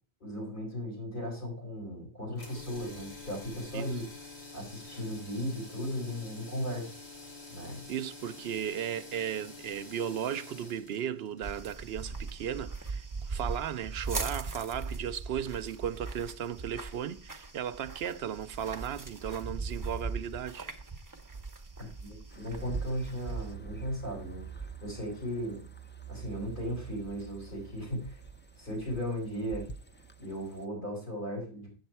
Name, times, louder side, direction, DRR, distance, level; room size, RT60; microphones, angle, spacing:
voice 1, 0.2-4.1 4.5-6.9 7.5-7.8 21.8-24.4 24.8-25.6 26.1-28.2 28.6-29.7 30.2-31.7, equal, 50° left, 4.3 m, -36 dB
sound 1, 2.3-12.5, left 3 dB, 90° left, 2.5 m, -48 dB
voice 2, 7.9-20.7, right 9 dB, 75° right, 0.8 m, -36 dB
sound 2, 11.4-23.5, right 4 dB, 20° right, 0.8 m, -39 dB
sound 3, 22.3-30.7, right 6 dB, 15° left, 0.4 m, -45 dB
7.9 x 7.5 x 4.4 m
omnidirectional pair, 1.1 m